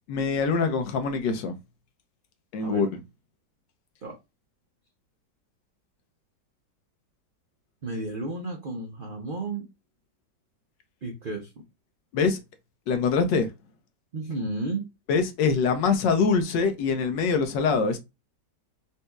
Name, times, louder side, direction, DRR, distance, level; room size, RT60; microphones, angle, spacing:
voice 1, 0.1-1.5 2.5-3.0 12.1-12.4 12.9-13.5 15.1-18.0, left 5 dB, 80° left, 1.3 m, -24 dB
voice 2, 7.8-9.6 11.0-11.5 14.1-14.9, right 2 dB, 90° right, 0.4 m, -32 dB
4.1 x 2.7 x 2.2 m
omnidirectional pair, 1.9 m